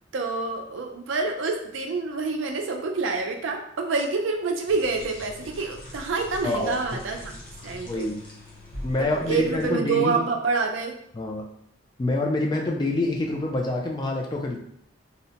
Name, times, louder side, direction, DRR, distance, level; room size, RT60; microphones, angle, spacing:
voice 1, 0.1-7.4 7.6-8.1 9.0-11.0, right 4 dB, 75° right, 3 dB, 0.4 m, -27 dB
sound 1, 4.7-9.7, left 1 dB, 45° left, 0.7 m, -42 dB
voice 2, 6.4-6.8 7.9-8.2 8.8-10.2 11.1-11.5 12.0-14.6, left 2 dB, 20° left, 1 dB, 0.3 m, -26 dB
2.7 x 2.1 x 2.8 m, 0.70 s
head